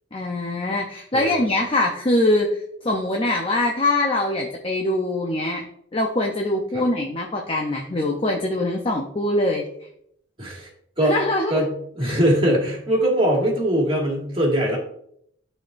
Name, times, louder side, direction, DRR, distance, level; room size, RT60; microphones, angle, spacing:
voice 1, 0.1-5.6 5.9-9.7 11.1-11.7 12.0-12.2, left 1 dB, 30° left, 1 dB, 0.7 m, -23 dB
voice 2, 1.1-1.5 6.7-6.8 10.4-10.7 11.0-11.2 11.5-14.8, right 1 dB, 25° right, -2 dB, 2.0 m, -21 dB
12.5 x 4.3 x 2.6 m, 0.71 s
head